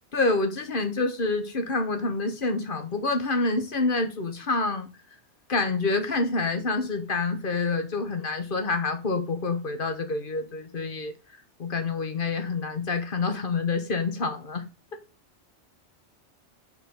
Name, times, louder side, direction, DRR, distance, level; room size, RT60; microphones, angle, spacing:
voice 1, 0.1-4.9 5.5-11.1 11.6-14.6, left 3 dB, 50° left, 1.2 m, -27 dB
8.2 x 4.5 x 5.4 m
omnidirectional pair, 1.2 m